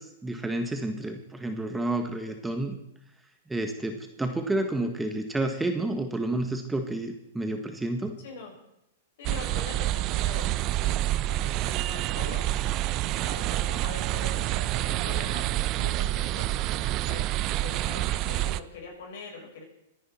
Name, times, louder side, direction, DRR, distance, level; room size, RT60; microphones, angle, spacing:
voice 1, 0.0-2.8 3.5-8.1, right 2 dB, 10° right, 5 dB, 1.5 m, -30 dB
voice 2, 8.2-8.5 9.2-10.5 10.8-12.5 13.1-16.5 17.1-19.6, left 4 dB, 65° left, 0 dB, 6.6 m, -43 dB
sound 1, 9.2-18.6, right 15 dB, 40° right, 0.6 m, -28 dB
26.0 x 10.0 x 4.4 m, 0.82 s
hypercardioid pair, 125°, 0 cm